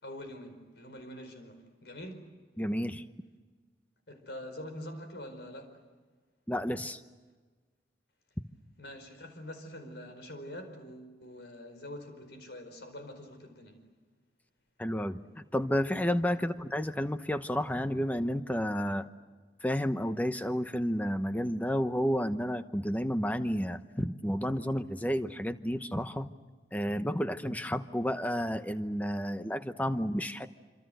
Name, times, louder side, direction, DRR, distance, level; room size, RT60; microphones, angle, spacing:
voice 1, 0.0-2.3 4.1-5.8 8.8-13.8 16.3-16.4, left 1 dB, 70° left, 7 dB, 4.7 m, -45 dB
voice 2, 2.6-3.0 6.5-7.0 14.8-19.1 19.6-26.3 26.7-30.5, equal, 10° left, 9 dB, 0.9 m, -31 dB
27.0 x 26.5 x 7.9 m, 1.4 s
head